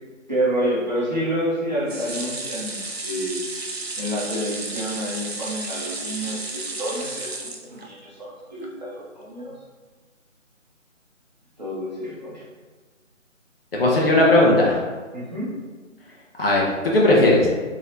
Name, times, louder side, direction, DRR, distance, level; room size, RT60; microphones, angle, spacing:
voice 1, 0.3-2.8 3.0-3.4 4.0-9.6 11.6-12.5 15.1-15.5, equal, 35° right, -7 dB, 1.0 m, -28 dB
sound 1, 1.9-8.2 8.6-8.7 9.0-9.1, right 3 dB, 50° right, 0.6 m, -33 dB
voice 2, 13.7-14.8 16.4-16.7 16.9-17.5, left 1 dB, 45° left, -4 dB, 1.1 m, -16 dB
4.6 x 3.1 x 2.7 m, 1.4 s
figure-of-eight pair, 165°, 39 cm